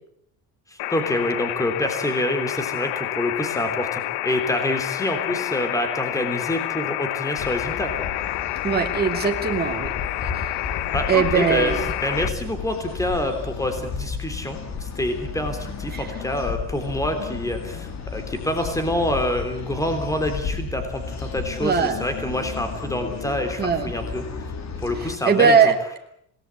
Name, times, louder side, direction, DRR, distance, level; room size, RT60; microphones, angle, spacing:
voice 1, 0.7-7.9 10.9-11.7 12.0-24.2 24.8-25.7, left 1 dB, 5° left, 6 dB, 3.4 m, -26 dB
sound 1, 0.8-12.3, left 15 dB, 65° left, 1.0 m, -29 dB
sound 2, 7.4-25.2, left 5 dB, 35° left, 2.6 m, -33 dB
voice 2, 8.6-9.9 10.2-10.5 11.1-11.9 15.9-16.1 21.6-22.0 23.6-23.9 25.0-25.7, right 6 dB, 20° right, 2 dB, 2.6 m, -21 dB
27.0 x 19.0 x 8.4 m, 0.73 s
cardioid pair, 160°, 45 cm